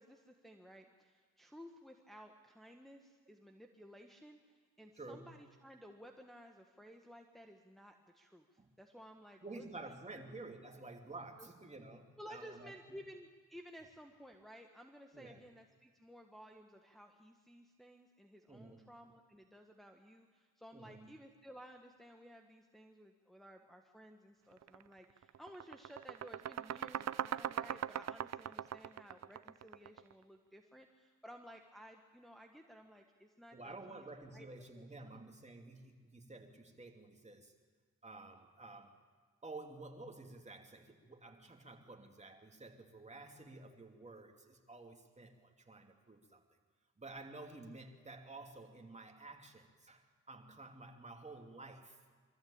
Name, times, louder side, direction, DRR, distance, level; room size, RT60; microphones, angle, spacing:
voice 1, 0.0-10.3 11.4-11.5 12.2-34.5 34.7-34.8 35.1-35.2, equal, ahead, 2 dB, 1.6 m, -56 dB
voice 2, 5.0-5.3 8.6-8.7 9.4-13.0 15.1-15.4 18.5-18.9 20.7-21.1 33.5-37.5 38.0-38.9 39.4-46.4 47.0-52.0, right 2 dB, 20° right, 3 dB, 3.0 m, -51 dB
sound 1, 24.6-24.8 25.2-30.1, right 10 dB, 55° right, 0.6 m, -40 dB
24.0 x 14.0 x 8.8 m, 1.5 s
supercardioid pair, 60°, 31 cm